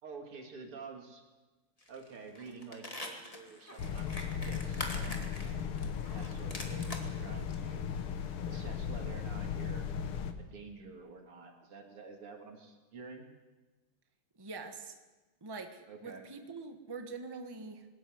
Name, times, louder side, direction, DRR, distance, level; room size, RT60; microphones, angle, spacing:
voice 1, 0.0-1.2 1.9-7.9 8.4-9.9 10.4-13.3 15.9-16.2, right 4 dB, 80° right, 3 dB, 3.5 m, -49 dB
sound 1, 1.8-2.1 2.3-7.1 7.5-7.6, left 1 dB, 15° left, 2.3 m, -43 dB
sound 2, 3.8-10.3, left 7 dB, 75° left, 2.1 m, -37 dB
voice 2, 14.4-15.0 15.4-17.9, right 4 dB, 15° right, 5 dB, 1.2 m, -44 dB
21.5 x 13.5 x 9.4 m, 1.2 s
omnidirectional pair, 2.4 m